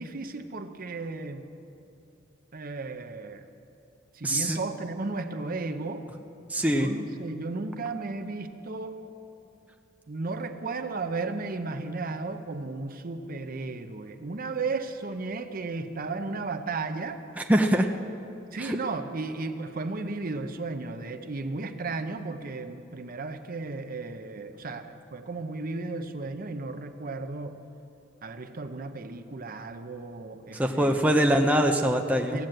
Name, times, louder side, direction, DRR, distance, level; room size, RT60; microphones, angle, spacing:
voice 1, 0.0-1.4 2.5-3.5 4.1-6.1 6.7-9.0 10.1-17.2 18.5-27.6 28.2-31.0 32.3-32.5, right 3 dB, 45° right, 7 dB, 0.7 m, -34 dB
voice 2, 4.2-4.6 6.5-6.9 17.5-17.9 18.6-18.8 30.6-32.4, right 1 dB, 5° right, 3 dB, 0.6 m, -23 dB
16.5 x 9.1 x 7.8 m, 2.7 s
head